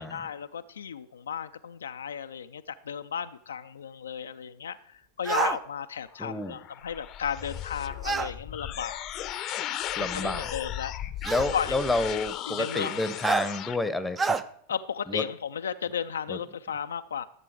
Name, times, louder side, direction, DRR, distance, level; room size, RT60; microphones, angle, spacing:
voice 1, 0.1-9.1 10.1-10.9 11.5-11.8 12.5-13.1 14.7-17.2, left 7 dB, 70° left, 9 dB, 0.4 m, -34 dB
sound 1, 5.2-5.6 8.0-8.3 9.6-9.7 11.2-11.5 13.2-13.5 14.2-14.4, right 4 dB, 20° right, 0.6 m, -27 dB
sound 2, 6.1-13.8, left 12 dB, 35° left, 0.7 m, -36 dB
voice 2, 6.2-6.6 10.0-10.5 11.2-14.4 15.1-15.2 16.3-16.4, left 2 dB, 5° left, 12 dB, 0.9 m, -30 dB
13.5 x 7.6 x 4.7 m, 0.66 s
figure-of-eight pair, 90°, 0 cm